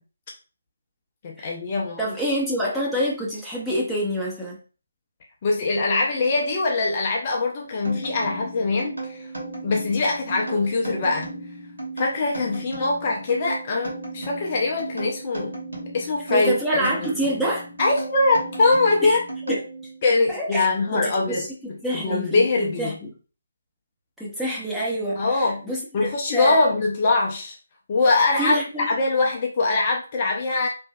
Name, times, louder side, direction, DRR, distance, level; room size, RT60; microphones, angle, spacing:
voice 1, 1.2-2.2 5.4-9.3 9.6-11.3 12.0-15.6 15.9-17.1 17.8-19.2 19.5-19.6 20.0-21.5 21.9-23.0 25.2-25.6 25.9-27.5 27.9-28.6 28.9-30.7, left 3 dB, 35° left, -1 dB, 0.5 m, -23 dB
voice 2, 2.0-4.6 16.3-17.7 19.0-19.2 19.5-19.6 20.3-21.5 21.8-23.1 24.2-26.7 28.4-29.0, equal, ahead, -6 dB, 0.7 m, -27 dB
sound 1, 7.8-20.0, right 2 dB, 80° right, 1.1 m, -35 dB
3.1 x 2.6 x 2.2 m, 0.36 s
figure-of-eight pair, 150°, 0 cm